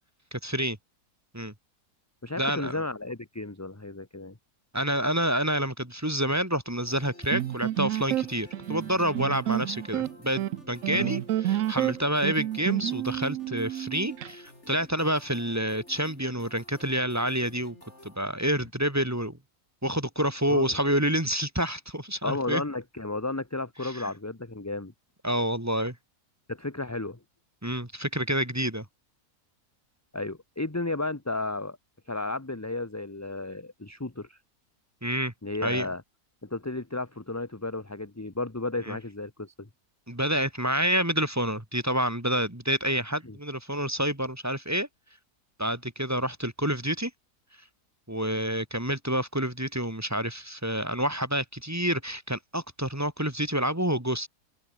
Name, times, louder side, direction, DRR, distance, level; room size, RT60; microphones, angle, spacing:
voice 1, 0.3-0.8 1.3-1.5 2.4-2.8 4.7-17.8 18.0-19.4 19.8-22.6 23.8-24.1 25.2-26.0 27.6-28.8 35.0-35.3 35.6-35.9 38.9-39.0 40.1-44.9 45.6-47.1 48.1-54.3, equal, 10° right, 2.3 m, -28 dB
voice 2, 2.2-4.4 10.9-11.1 20.5-20.8 22.2-24.9 26.5-27.2 30.1-31.8 32.1-34.4 35.4-36.0 36.4-39.7 43.2-43.4, left 2 dB, 10° left, 1.2 m, -33 dB
sound 1, 6.9-18.2, left 1 dB, 45° left, 7.6 m, -51 dB
sound 2, 7.3-14.3, right 13 dB, 65° right, 1.0 m, -29 dB
open air
omnidirectional pair, 1.6 m